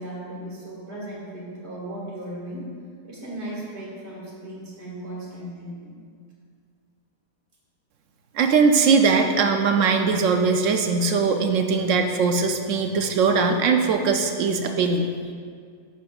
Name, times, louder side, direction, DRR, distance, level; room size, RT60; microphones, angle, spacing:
voice 1, 0.0-2.7 3.0-5.9, right 1 dB, 45° right, -6 dB, 2.2 m, -36 dB
voice 2, 8.3-15.1, right 5 dB, 65° right, 5 dB, 0.8 m, -20 dB
11.0 x 6.5 x 2.4 m, 2.1 s
omnidirectional pair, 1.7 m